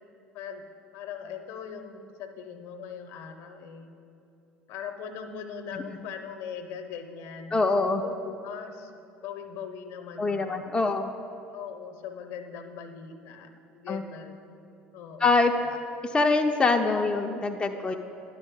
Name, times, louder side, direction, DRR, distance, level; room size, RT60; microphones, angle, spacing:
voice 1, 0.3-0.7 0.9-3.9 4.7-8.9 9.2-10.6 11.5-14.4 14.9-15.4, left 7 dB, 55° left, 7 dB, 0.6 m, -40 dB
voice 2, 7.5-8.0 10.2-11.1 13.9-14.0 15.2-15.8 16.0-18.0, left 3 dB, 15° left, 4 dB, 0.4 m, -24 dB
10.5 x 6.1 x 3.6 m, 2.7 s
figure-of-eight pair, 65°, 6 cm